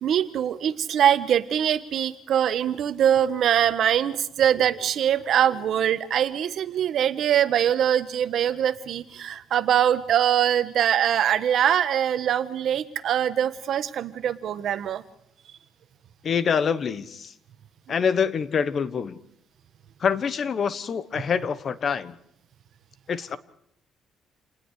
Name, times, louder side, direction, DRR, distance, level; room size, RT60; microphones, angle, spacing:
voice 1, 0.0-15.0, right 9 dB, 65° right, 11 dB, 1.3 m, -23 dB
voice 2, 16.2-17.3 17.9-19.2 20.0-22.2 23.1-23.4, left 6 dB, 45° left, 14 dB, 1.2 m, -25 dB
28.5 x 19.5 x 4.9 m, 0.73 s
cardioid pair, 110°, 0 cm